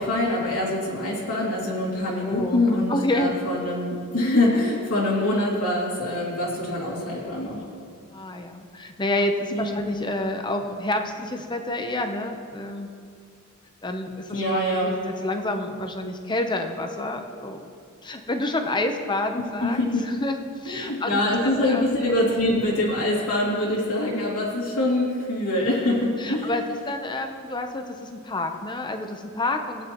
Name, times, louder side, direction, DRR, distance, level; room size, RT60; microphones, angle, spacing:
voice 1, 0.0-7.6 9.5-9.8 14.3-15.0 19.6-20.0 20.6-26.5, left 1 dB, 85° left, -6 dB, 2.7 m, -24 dB
voice 2, 1.9-3.3 8.1-12.9 13.8-14.4 14.8-17.7 18.0-22.0 25.9-26.0 26.2-29.9, left 2 dB, 20° left, 5 dB, 0.8 m, -29 dB
18.0 x 9.3 x 3.0 m, 2.3 s
head